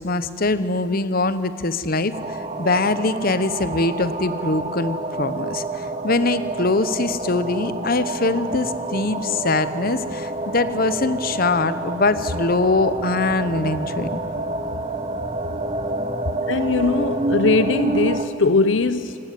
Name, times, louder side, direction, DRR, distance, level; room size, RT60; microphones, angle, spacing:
voice 1, 0.0-14.2, left 3 dB, 50° left, 13 dB, 1.0 m, -23 dB
sound 1, 2.1-18.3, right 2 dB, 35° right, 1.4 m, -28 dB
voice 2, 16.5-19.2, left 3 dB, 75° left, 13 dB, 0.7 m, -20 dB
27.5 x 18.5 x 9.3 m, 2.8 s
head